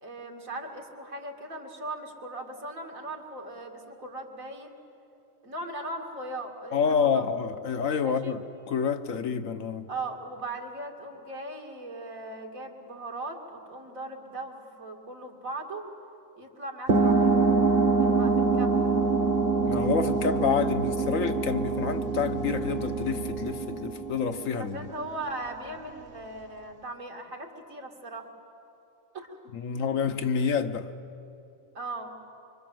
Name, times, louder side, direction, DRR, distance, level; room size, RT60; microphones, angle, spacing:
voice 1, 0.0-4.8 5.4-7.2 8.0-8.4 9.9-15.8 16.4-17.4 18.0-18.8 24.6-28.3 29.1-29.4 31.7-32.2, right 2 dB, 85° right, 2.9 m, -38 dB
voice 2, 6.7-9.8 19.6-24.9 29.5-30.9, left 6 dB, 75° left, 1.5 m, -28 dB
sound 1, 16.9-25.0, right 4 dB, 45° right, 1.1 m, -25 dB
25.5 x 25.0 x 7.8 m
omnidirectional pair, 1.4 m